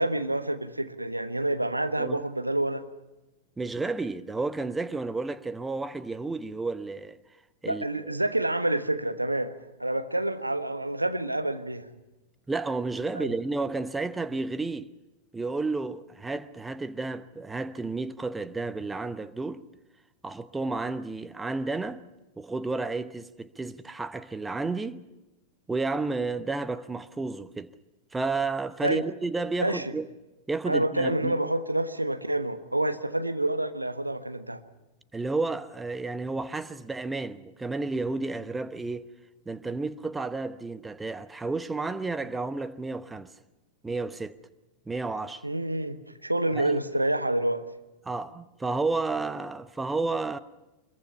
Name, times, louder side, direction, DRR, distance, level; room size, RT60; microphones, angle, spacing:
voice 1, 0.0-2.8 7.7-9.5 9.8-11.9 13.1-13.3 28.8-29.0 29.6-29.8 30.7-34.6 45.4-47.6, right 1 dB, 85° right, 1.2 m, -28 dB
voice 2, 3.6-7.2 7.6-8.2 12.5-14.9 15.3-19.6 20.2-22.1 22.4-25.0 25.7-27.7 28.1-30.1 30.5-31.4 35.1-39.1 39.5-43.3 43.8-44.4 44.9-45.4 46.5-46.8 48.0-50.4, right 3 dB, 10° right, 1.0 m, -31 dB
25.0 x 22.0 x 5.6 m
figure-of-eight pair, 90°, 0 cm